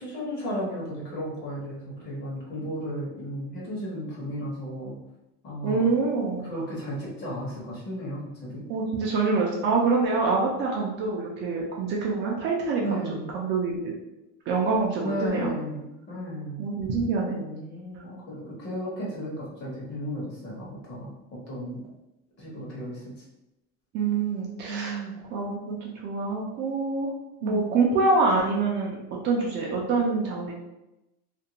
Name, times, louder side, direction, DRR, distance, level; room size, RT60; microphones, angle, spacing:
voice 1, 0.0-4.9 5.4-5.9 6.4-8.6 12.8-13.3 15.0-16.6 17.3-21.1 21.5-21.8 22.4-23.0 24.6-25.2 27.4-27.7, equal, 40° left, -5 dB, 1.0 m, -34 dB
voice 2, 5.6-6.4 8.7-13.0 13.3-13.9 14.5-15.5 16.6-17.4 23.9-25.0 25.3-27.1 27.4-30.5, right 4 dB, 40° right, -2 dB, 0.4 m, -26 dB
2.5 x 2.2 x 2.8 m, 0.93 s
cardioid pair, 175°, 29 cm